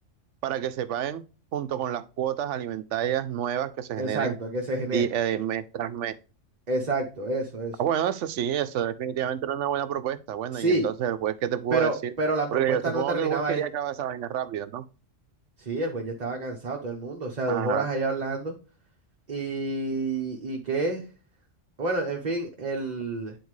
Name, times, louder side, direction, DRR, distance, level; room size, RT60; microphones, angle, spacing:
voice 1, 0.4-1.2 1.5-4.4 4.9-6.1 7.8-12.1 12.5-14.8 17.5-17.9, right 10 dB, 80° right, 1.0 m, -28 dB
voice 2, 4.0-5.1 6.7-7.8 10.5-10.9 11.7-13.6 15.6-18.5 19.3-21.0 21.8-23.3, right 2 dB, 40° right, 1.0 m, -28 dB
9.3 x 4.4 x 3.1 m
omnidirectional pair, 1.2 m